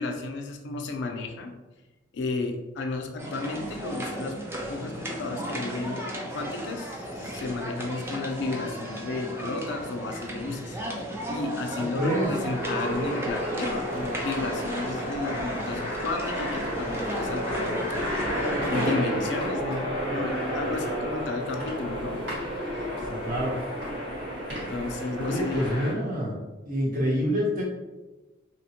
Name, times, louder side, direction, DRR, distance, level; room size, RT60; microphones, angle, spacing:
voice 1, 0.0-1.5 2.1-4.4 4.7-6.1 6.3-10.8 11.3-18.2 18.7-22.3 22.7-22.9 24.7-25.7, left 3 dB, 60° left, 4 dB, 0.4 m, -33 dB
sound 1, 3.2-18.9, right 1 dB, 15° right, 0.3 m, -35 dB
sound 2, 11.6-25.9, equal, 65° right, 1.3 m, -31 dB
voice 2, 12.0-12.3 23.1-23.5 25.2-26.4 26.7-27.6, equal, 45° right, -5 dB, 1.0 m, -27 dB
2.9 x 2.1 x 2.8 m, 1.1 s
head